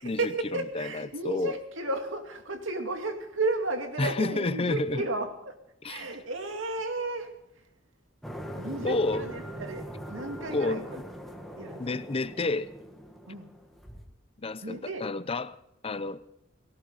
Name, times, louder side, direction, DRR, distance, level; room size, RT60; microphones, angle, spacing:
voice 1, 0.0-5.6 5.8-7.7 8.6-11.0 11.6-11.9 13.3-13.5 14.6-15.1, right 2 dB, 80° right, 2.4 m, -33 dB
voice 2, 0.7-1.5 4.0-5.0 5.8-6.0 8.8-9.2 10.5-10.8 11.8-12.7 14.4-15.6 15.8-16.2, left 2 dB, 30° left, 0.6 m, -30 dB
sound 1, 8.2-14.0, equal, ahead, 2.1 m, -41 dB
18.0 x 17.5 x 4.1 m
head